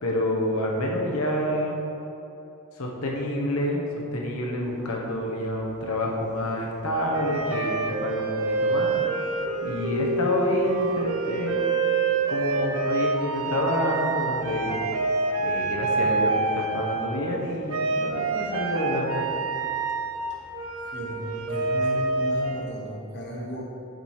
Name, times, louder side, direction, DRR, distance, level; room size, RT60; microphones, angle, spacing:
voice 1, 0.0-1.7 2.8-3.8 4.1-9.0 9.6-11.6 12.3-14.8 15.4-19.2, left 1 dB, 80° left, -1 dB, 1.1 m, -28 dB
sound 1, 4.6-5.9 7.1-17.4 17.7-22.6, right 3 dB, 80° right, 0.5 m, -27 dB
voice 2, 20.9-23.6, equal, 50° left, -3 dB, 1.3 m, -35 dB
6.6 x 4.4 x 4.8 m, 2.9 s
head